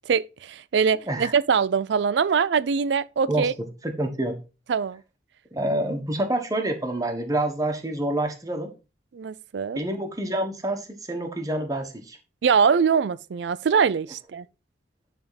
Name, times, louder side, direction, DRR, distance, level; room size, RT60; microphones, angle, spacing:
voice 1, 0.1-3.5 4.7-5.0 9.1-9.8 12.4-14.5, right 6 dB, 70° right, 0.4 m, -23 dB
voice 2, 3.8-4.3 5.5-8.7 9.7-12.2, right 1 dB, 20° right, 1.2 m, -27 dB
10.5 x 3.6 x 4.0 m
head